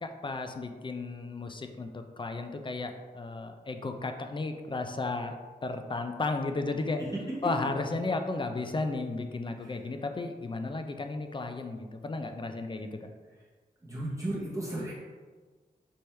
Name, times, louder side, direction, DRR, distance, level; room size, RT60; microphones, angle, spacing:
voice 1, 0.0-5.4 5.6-7.0 7.4-13.1, left 3 dB, 30° left, 6 dB, 0.4 m, -34 dB
voice 2, 13.8-14.9, right 1 dB, 20° right, -7 dB, 0.9 m, -34 dB
4.4 x 3.4 x 3.2 m, 1.4 s
wide cardioid pair, 100°, 17 cm